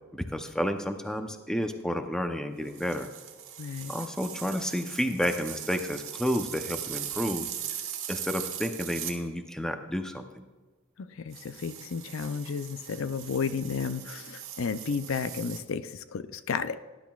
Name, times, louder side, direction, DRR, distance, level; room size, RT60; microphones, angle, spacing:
voice 1, 0.1-3.1 3.9-7.5 8.1-10.4, equal, 5° left, 6 dB, 0.6 m, -31 dB
sound 1, 2.7-9.2 11.3-15.6, right 10 dB, 70° right, 1.4 m, -40 dB
voice 2, 3.6-3.9 11.0-16.8, left 5 dB, 70° left, 12 dB, 0.5 m, -32 dB
18.5 x 10.5 x 2.4 m, 1.3 s
head